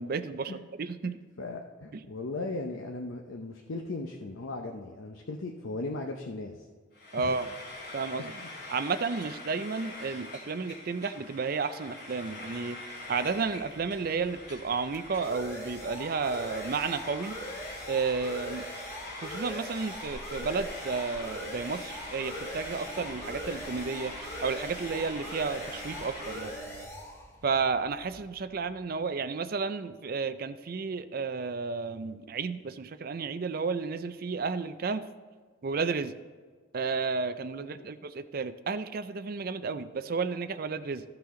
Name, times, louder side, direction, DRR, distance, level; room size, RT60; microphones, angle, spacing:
voice 1, 0.0-1.2 1.9-2.0 7.1-7.5 7.9-8.4 8.7-12.8 13.1-17.4 17.9-18.7 19.1-26.6 27.4-35.0 35.6-36.2 36.7-41.0, right 4 dB, 50° right, 12 dB, 0.4 m, -32 dB
voice 2, 1.0-6.6 7.2-7.3 37.6-37.9, left 2 dB, 80° left, 2 dB, 0.7 m, -37 dB
Frying (food), 6.9-26.7, left 2 dB, 50° left, 3.0 m, -44 dB
sound 1, 13.3-28.7, equal, 15° left, 1.1 m, -43 dB
sound 2, 19.9-26.9, right 2 dB, 20° right, 1.2 m, -47 dB
14.5 x 5.9 x 3.8 m, 1.5 s
head